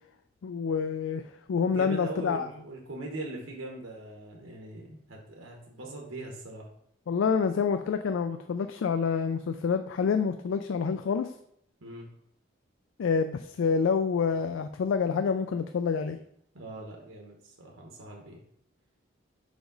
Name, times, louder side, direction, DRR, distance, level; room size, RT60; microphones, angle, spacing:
voice 1, 0.4-2.5 7.1-11.3 13.0-16.2, left 6 dB, 70° left, 8 dB, 0.3 m, -27 dB
voice 2, 1.7-6.7 11.8-12.1 16.5-18.4, right 2 dB, 85° right, 0 dB, 1.1 m, -41 dB
5.0 x 5.0 x 3.9 m, 0.73 s
head